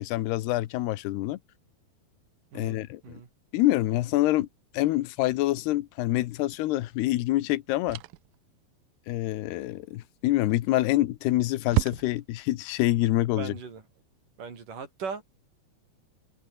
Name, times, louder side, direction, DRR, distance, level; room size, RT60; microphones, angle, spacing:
voice 1, 0.0-1.4 2.5-3.2 3.5-4.5 4.7-8.0 9.1-13.5, left 16 dB, 80° left, 3.0 m, -26 dB
voice 2, 2.5-3.3 13.4-13.8 14.4-15.2, right 5 dB, 50° right, 5.2 m, -38 dB
sound 1, 6.5-6.7 7.9-8.4 10.4-10.9 11.2-11.3 11.7-12.5, right 19 dB, 90° right, 2.0 m, -30 dB
omnidirectional pair, 4.9 m